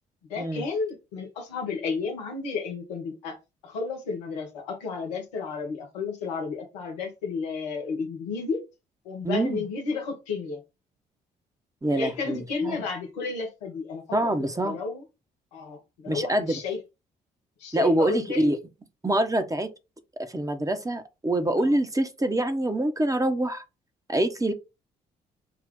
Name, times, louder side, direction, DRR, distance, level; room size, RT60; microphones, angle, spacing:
voice 1, 0.3-3.4 3.6-8.6 9.0-10.6 11.9-14.3 14.6-15.0 15.5-16.8 17.6-18.6 21.6-21.8, left 4 dB, 85° left, 1.1 m, -32 dB
voice 2, 9.2-9.6 11.8-12.8 14.1-14.8 16.1-16.6 17.7-18.6 19.0-19.7 20.2-23.6 24.1-24.5, right 1 dB, 15° right, 1.0 m, -25 dB
5.4 x 2.4 x 3.6 m
hypercardioid pair, 45°, 21 cm